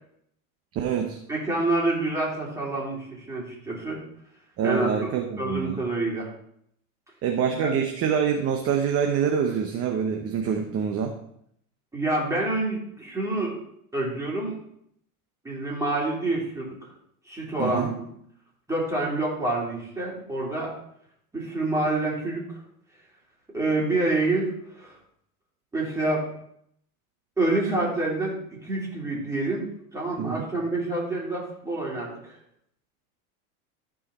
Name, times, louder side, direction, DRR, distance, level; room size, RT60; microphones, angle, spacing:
voice 1, 0.7-1.2 4.6-5.8 7.2-11.1 17.6-17.9 30.2-30.5, right 7 dB, 30° right, 4 dB, 0.9 m, -26 dB
voice 2, 1.3-4.0 4.6-5.1 5.4-6.3 7.6-7.7 11.9-13.5 13.9-14.6 15.4-16.8 17.3-18.0 18.7-20.7 21.3-22.6 23.5-25.0 25.7-26.2 27.4-29.7 29.9-32.3, right 2 dB, 5° right, -5 dB, 3.4 m, -27 dB
14.0 x 4.8 x 4.2 m, 0.71 s
supercardioid pair, 135°, 45 cm